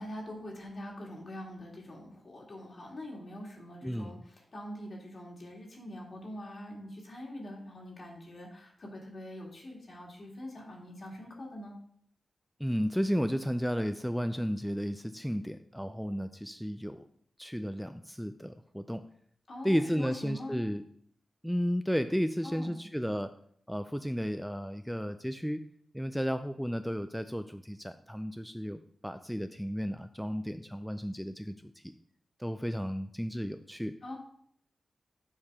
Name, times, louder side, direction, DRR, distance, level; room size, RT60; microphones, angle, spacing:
voice 1, 0.0-11.7 19.5-20.7 22.4-22.8 34.0-34.2, left 1 dB, 55° left, -2 dB, 2.0 m, -43 dB
voice 2, 3.8-4.1 12.6-17.1 17.4-19.0 19.6-20.8 21.4-23.3 23.7-25.6 25.9-31.7 32.4-33.9, equal, ahead, 9 dB, 0.3 m, -33 dB
7.3 x 4.7 x 3.6 m, 0.64 s
cardioid pair, 80°, 0 cm